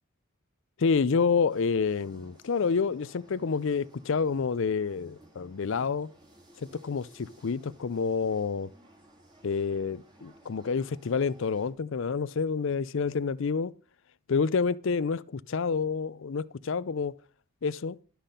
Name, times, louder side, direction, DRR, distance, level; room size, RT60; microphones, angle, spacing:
voice 1, 0.8-6.1 6.6-8.7 9.4-13.7 14.3-17.1 17.6-18.0, left 5 dB, 60° left, 0.5 m, -28 dB
sound 1, 1.5-11.7, right 1 dB, 20° right, 2.2 m, -58 dB
12.0 x 5.8 x 5.1 m
head